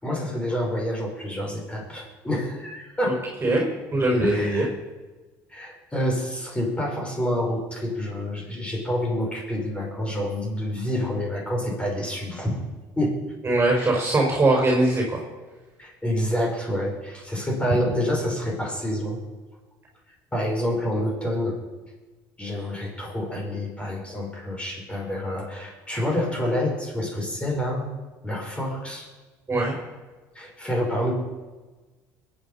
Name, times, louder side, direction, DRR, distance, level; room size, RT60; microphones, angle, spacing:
voice 1, 0.0-3.3 4.2-4.7 5.5-12.6 13.0-13.2 13.7-13.9 15.8-19.2 20.3-21.6 22.4-27.9 28.2-29.1 30.4-31.1, equal, 15° left, -1 dB, 5.8 m, -28 dB
voice 2, 3.4-4.7 13.4-15.2 29.5-29.7, right 2 dB, 25° right, -1 dB, 5.2 m, -21 dB
22.0 x 8.9 x 5.7 m, 1.3 s
supercardioid pair, 95°, 8 cm